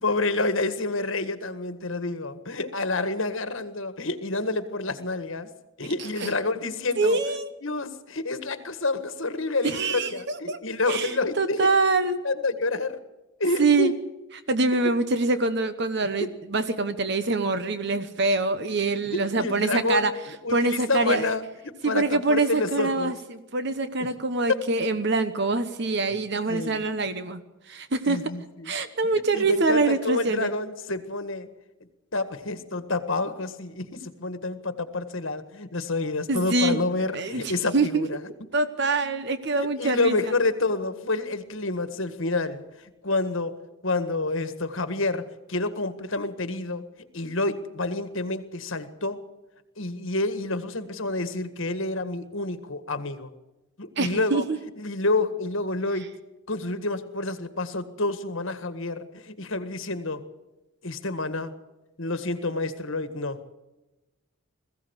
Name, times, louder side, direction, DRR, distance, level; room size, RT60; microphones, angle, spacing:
voice 1, 0.0-5.5 5.8-7.2 7.6-11.7 12.2-13.0 13.4-14.0 14.8-14.9 19.1-20.1 20.4-23.1 26.5-26.8 28.0-28.7 29.0-31.5 32.1-38.2 39.5-42.6 43.0-43.5 43.8-46.8 47.1-49.2 49.8-53.3 53.8-54.4 54.8-56.1 56.5-60.2 60.8-61.5 62.0-63.4, left 2 dB, 65° left, 10 dB, 1.7 m, -28 dB
voice 2, 7.0-7.5 9.6-10.6 10.9-12.2 13.6-13.9 14.5-20.1 20.5-21.3 21.8-27.4 27.7-28.2 28.6-30.5 36.3-36.8 37.1-38.1 38.5-40.2 54.0-54.6, right 3 dB, 50° right, 11 dB, 1.0 m, -25 dB
21.0 x 15.5 x 8.2 m, 1.0 s
head